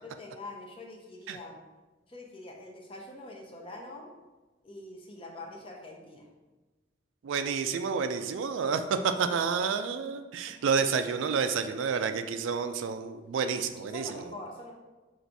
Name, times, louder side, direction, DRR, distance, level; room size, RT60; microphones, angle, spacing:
voice 1, 0.0-1.6 2.1-4.1 4.6-6.3 7.8-9.6 10.5-10.7 13.9-14.7, left 2 dB, 30° left, 0 dB, 0.6 m, -45 dB
voice 2, 7.2-14.3, right 6 dB, 80° right, 8 dB, 0.3 m, -29 dB
4.0 x 2.5 x 4.5 m, 1.2 s
head